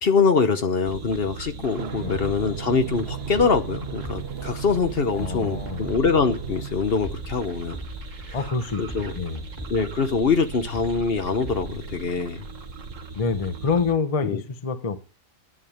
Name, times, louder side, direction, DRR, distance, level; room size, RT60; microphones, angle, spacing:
voice 1, 0.0-7.8 8.3-8.4 8.8-9.2 9.7-12.5 14.2-14.4, left 5 dB, 50° left, 1.2 m, -24 dB
sound 1, 0.8-13.9, right 3 dB, 80° right, 1.7 m, -38 dB
Drum, 1.8-6.8, right 9 dB, 55° right, 1.0 m, -36 dB
sound 2, 1.9-12.0, right 1 dB, 10° left, 2.6 m, -42 dB
voice 2, 5.1-5.8 8.3-9.4 13.2-15.0, left 4 dB, 30° left, 0.8 m, -27 dB
10.0 x 8.9 x 8.7 m
omnidirectional pair, 1.3 m